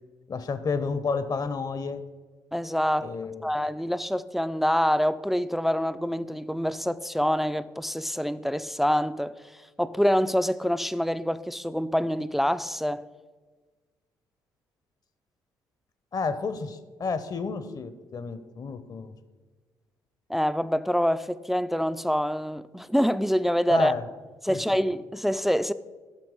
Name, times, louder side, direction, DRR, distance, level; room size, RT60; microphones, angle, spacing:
voice 1, 0.3-2.0 3.0-3.6 16.1-19.1 23.7-24.0 24.5-24.8, left 4 dB, 45° left, 0.7 m, -31 dB
voice 2, 2.5-3.1 3.4-9.4 9.8-13.0 20.3-23.9 24.4-25.7, equal, ahead, 0.3 m, -26 dB
8.6 x 5.9 x 4.9 m
hypercardioid pair, 55°, 9 cm